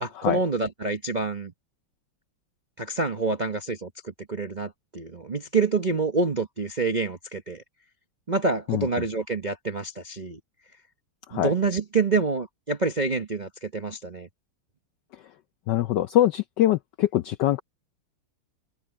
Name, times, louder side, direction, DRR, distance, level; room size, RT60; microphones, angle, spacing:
voice 1, 0.0-1.5 2.8-7.6 8.3-10.4 11.3-14.3, right 3 dB, 40° right, 0.6 m, -27 dB
voice 2, 15.7-17.6, left 13 dB, 75° left, 1.0 m, -23 dB
omnidirectional pair, 2.4 m